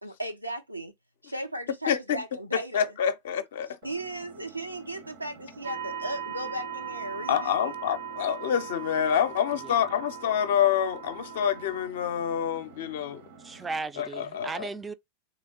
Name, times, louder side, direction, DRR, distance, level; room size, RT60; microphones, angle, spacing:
voice 1, 0.0-0.9 1.2-3.0 3.8-7.7, right 1 dB, 90° right, 0.5 m, -36 dB
voice 2, 1.9-2.2 2.5-3.7 7.3-13.2 14.0-14.7, left 9 dB, 55° left, 0.5 m, -27 dB
Engine, 3.8-13.8, right 4 dB, 50° right, 0.7 m, -51 dB
sound 1, 5.6-11.9, right 8 dB, 70° right, 1.1 m, -39 dB
voice 3, 13.4-14.9, right 4 dB, 15° right, 0.3 m, -35 dB
3.4 x 2.8 x 2.8 m
figure-of-eight pair, 90°, 0 cm